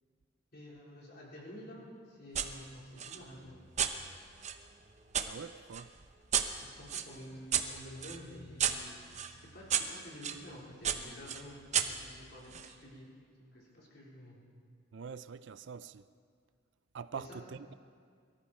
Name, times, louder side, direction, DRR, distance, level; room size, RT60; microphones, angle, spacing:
voice 1, 0.5-3.6 6.6-13.1 13.5-14.4 17.1-17.5, equal, 50° left, 4.2 m, -50 dB
sound 1, 2.3-2.5 3.0-5.3 5.7-10.4 10.8-12.7, right 8 dB, 35° right, 0.8 m, -35 dB
voice 2, 5.3-5.9 14.9-16.1 16.9-17.7, right 6 dB, 60° right, 0.4 m, -44 dB
23.0 x 13.5 x 4.4 m
head